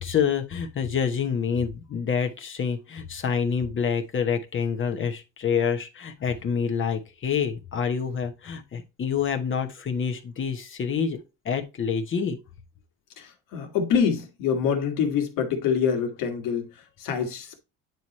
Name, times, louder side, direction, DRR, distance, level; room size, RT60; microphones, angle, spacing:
voice 1, 0.0-11.2 11.4-12.4, left 6 dB, 40° left, 1.1 m, -27 dB
voice 2, 13.2-17.6, left 7 dB, 80° left, 1.7 m, -26 dB
9.3 x 3.1 x 4.1 m
cardioid pair, 110°, 32 cm